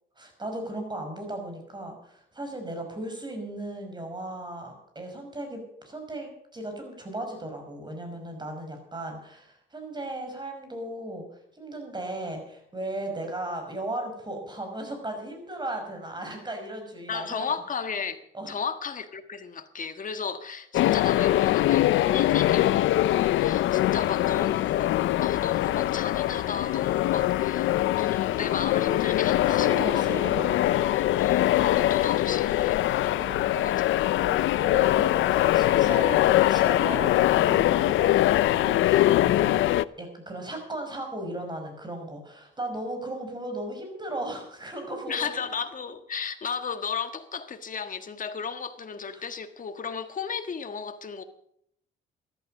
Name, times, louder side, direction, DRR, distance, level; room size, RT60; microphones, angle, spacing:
voice 1, 0.2-11.3 11.5-17.6 18.3-18.5 23.1-23.8 29.5-30.6 33.1-33.9 34.3-45.3 49.1-49.2, right 1 dB, 20° right, 5.5 m, -36 dB
voice 2, 17.1-18.2 18.5-24.9 25.2-30.2 30.6-33.3 33.6-33.9 45.1-51.2, left 6 dB, 40° left, 1.6 m, -34 dB
sound 1, 20.7-39.8, left 14 dB, 75° left, 0.5 m, -23 dB
13.5 x 12.0 x 6.4 m
cardioid pair, 90°, 20 cm